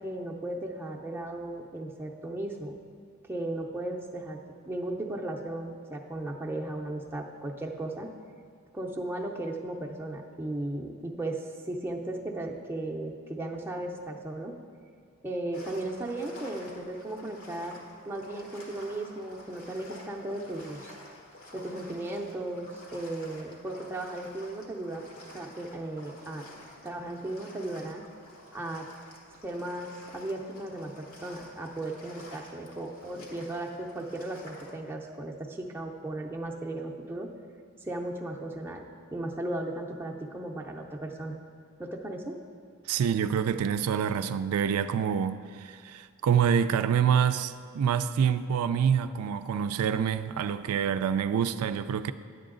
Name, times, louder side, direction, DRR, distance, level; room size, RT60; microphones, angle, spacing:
voice 1, 0.0-2.7 3.3-4.4 4.7-8.1 8.7-14.5 15.2-17.8 18.1-21.0 21.5-26.5 26.8-28.0 28.5-28.9 29.3-37.3 37.8-38.8 39.1-41.4 41.8-42.4, right 1 dB, 10° right, 0.5 m, -36 dB
sound 1, 15.5-34.7, left 1 dB, 80° left, 1.4 m, -50 dB
voice 2, 42.9-52.1, right 8 dB, 85° right, 0.3 m, -26 dB
10.5 x 7.8 x 3.8 m
head